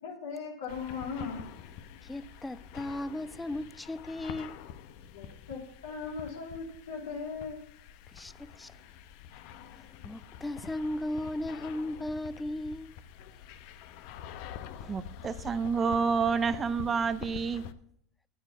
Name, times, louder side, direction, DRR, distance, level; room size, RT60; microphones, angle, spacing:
voice 1, 0.0-1.4 5.1-7.6, left 5 dB, 85° left, 3.0 m, -38 dB
sound 1, 0.7-17.7, left 9 dB, 60° left, 0.9 m, -46 dB
voice 2, 2.0-4.6 8.1-8.7 10.0-12.9 14.8-15.0, left 1 dB, 10° left, 0.5 m, -36 dB
voice 3, 14.9-17.6, right 5 dB, 25° right, 0.7 m, -29 dB
9.3 x 8.8 x 7.3 m
hypercardioid pair, 95°, 0 cm